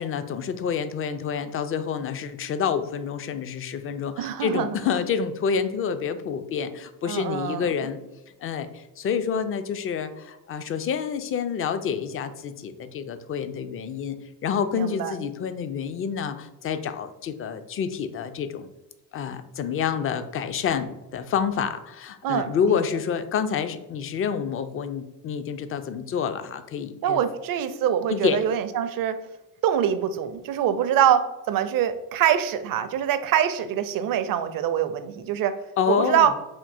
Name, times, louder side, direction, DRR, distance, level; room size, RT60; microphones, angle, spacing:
voice 1, 0.0-8.0 8.4-18.7 19.1-27.2 28.1-28.4 35.8-36.3, left 7 dB, 30° left, 10 dB, 0.4 m, -28 dB
voice 2, 4.2-4.8 7.1-7.7 14.7-15.1 22.2-22.8 27.0-29.2 29.6-35.6 35.9-36.3, right 9 dB, 50° right, 10 dB, 0.5 m, -24 dB
3.6 x 2.6 x 2.6 m, 1.0 s
hypercardioid pair, 55°, 47 cm